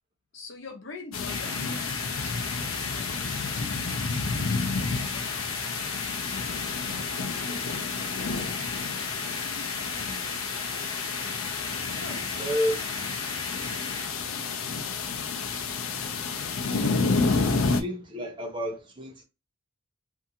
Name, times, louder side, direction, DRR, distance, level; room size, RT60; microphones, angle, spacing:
voice 1, 0.3-4.2 4.9-5.6 6.7-7.7 9.2-10.5 12.0-12.5, left 3 dB, 65° left, 0.8 m, -46 dB
sound 1, 1.1-17.8, left 4 dB, 90° left, 0.5 m, -30 dB
sound 2, 1.2-14.1, left 1 dB, 20° left, 0.7 m, -39 dB
voice 2, 12.4-13.1 17.5-19.2, equal, 25° right, 0.7 m, -32 dB
2.6 x 2.5 x 2.7 m
head